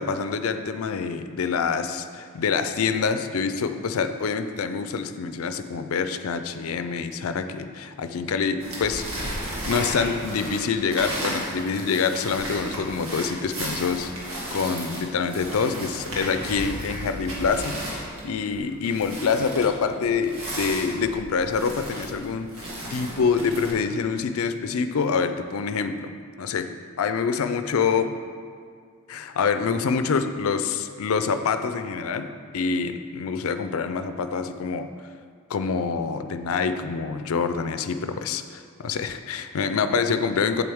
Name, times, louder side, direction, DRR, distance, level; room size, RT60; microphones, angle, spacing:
voice 1, 0.0-9.0 9.4-14.1 14.5-22.5 22.9-26.1 26.4-28.2 29.1-34.9 35.5-40.6, left 5 dB, 75° left, 9 dB, 0.4 m, -26 dB
sound 1, 8.6-23.7, right 1 dB, 75° right, 1.9 m, -34 dB
7.7 x 7.7 x 3.5 m, 2.1 s
head